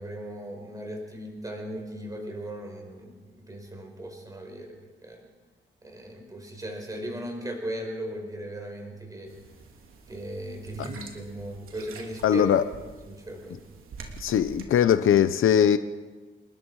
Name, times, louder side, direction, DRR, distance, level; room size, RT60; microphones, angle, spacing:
voice 1, 0.0-4.8 5.0-5.3 5.8-9.3 10.1-12.4 13.1-13.6, right 1 dB, 15° right, 2 dB, 5.2 m, -37 dB
sound 1, 9.3-14.7, right 4 dB, 85° right, 3.1 m, -45 dB
voice 2, 12.2-12.6 14.2-15.8, left 9 dB, 85° left, 11 dB, 0.9 m, -20 dB
28.0 x 20.5 x 4.9 m, 1.3 s
wide cardioid pair, 155°, 21 cm